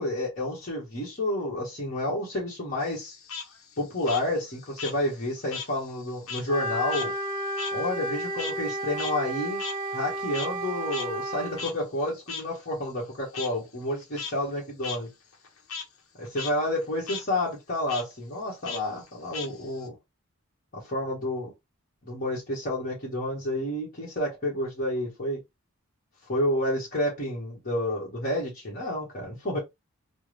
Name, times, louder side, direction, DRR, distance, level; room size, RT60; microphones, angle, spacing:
voice 1, 0.0-3.2 3.8-7.1 7.7-9.6 9.9-15.1 16.2-19.9 20.8-21.5 22.0-25.4 26.3-29.6, left 1 dB, 40° left, 1.4 m, -30 dB
Frog, 2.8-5.7 6.0-10.7 10.9-11.0 11.6-11.7 12.3-12.4 13.3-13.5 14.0-14.3 14.8-15.0 15.3-15.8 16.2-16.5 16.8-17.2 17.9-18.0 18.6-19.9, left 6 dB, 70° left, 0.9 m, -37 dB
Wind instrument woodwind instrument, 6.5-11.7, right 1 dB, 20° right, 0.8 m, -32 dB
3.4 x 2.1 x 3.2 m
head